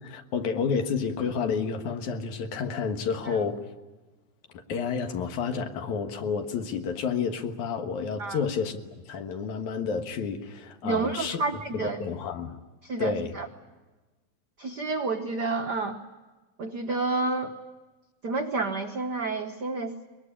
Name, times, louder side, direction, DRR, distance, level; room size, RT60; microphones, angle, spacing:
voice 1, 0.0-3.6 4.7-8.8 9.1-11.4 11.7-12.6 13.0-13.3, left 6 dB, 80° left, 6 dB, 2.9 m, -30 dB
voice 2, 10.8-12.0 12.8-13.5 14.6-16.0 16.6-17.5 18.2-19.9, right 3 dB, 75° right, 5 dB, 0.9 m, -30 dB
22.5 x 21.0 x 10.0 m, 1.2 s
omnidirectional pair, 3.4 m